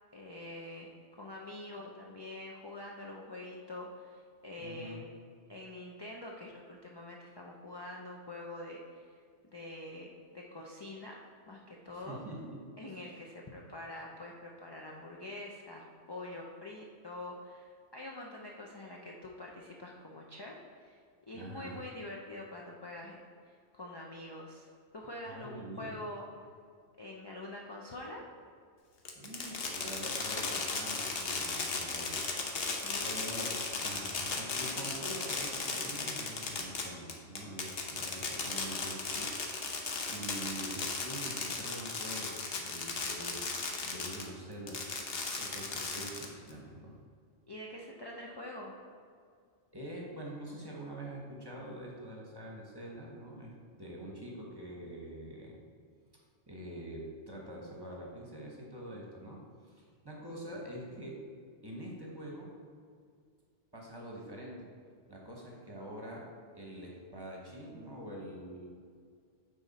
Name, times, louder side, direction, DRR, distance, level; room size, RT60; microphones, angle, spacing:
voice 1, 0.1-0.9 1.2-5.0 5.5-9.1 9.5-11.2 11.5-12.2 12.8-21.0 21.3-24.7 24.9-26.3 27.0-28.2 32.8-33.2 47.5-48.7, left 1 dB, 35° left, -2 dB, 0.4 m, -45 dB
voice 2, 4.6-5.0 11.9-12.6 21.3-21.9 25.3-26.0 29.1-32.2 33.0-44.8 45.3-47.0 49.7-55.6 56.5-61.2 61.6-62.5 63.7-64.7 65.1-66.3 66.5-68.7, right 1 dB, 20° right, -3 dB, 1.1 m, -45 dB
Fireworks, 29.1-44.3 44.7-46.5, left 4 dB, 60° left, 1.0 m, -36 dB
9.1 x 3.6 x 4.1 m, 2.1 s
omnidirectional pair, 1.2 m